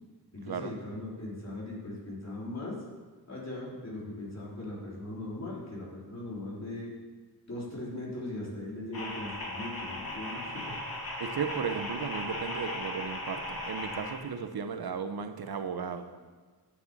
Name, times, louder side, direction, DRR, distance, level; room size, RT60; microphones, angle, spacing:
voice 1, 0.3-2.8 3.3-6.9 7.5-10.7 11.4-11.5, left 1 dB, 45° left, -5 dB, 3.4 m, -39 dB
sound 1, 8.9-14.2, left 1 dB, 65° left, 2.7 m, -37 dB
voice 2, 11.2-16.1, right 6 dB, 70° right, 8 dB, 0.9 m, -35 dB
9.5 x 6.9 x 7.3 m, 1.5 s
wide cardioid pair, 105°, 38 cm